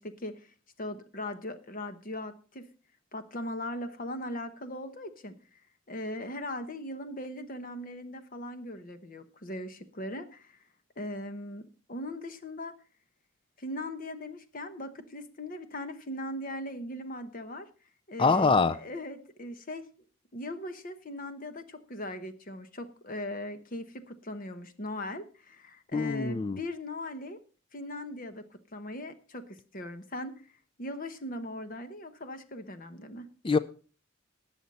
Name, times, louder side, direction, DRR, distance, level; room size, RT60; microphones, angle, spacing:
voice 1, 0.0-2.6 3.1-5.6 5.9-10.6 11.0-12.8 13.6-17.7 18.1-19.9 20.3-27.4 27.7-28.4 28.7-30.3 30.8-33.3, left 1 dB, 45° left, 9 dB, 1.0 m, -39 dB
voice 2, 18.2-18.8 25.9-26.6 33.4-33.6, left 4 dB, 25° left, 16 dB, 0.4 m, -24 dB
19.0 x 7.0 x 4.2 m, 0.39 s
head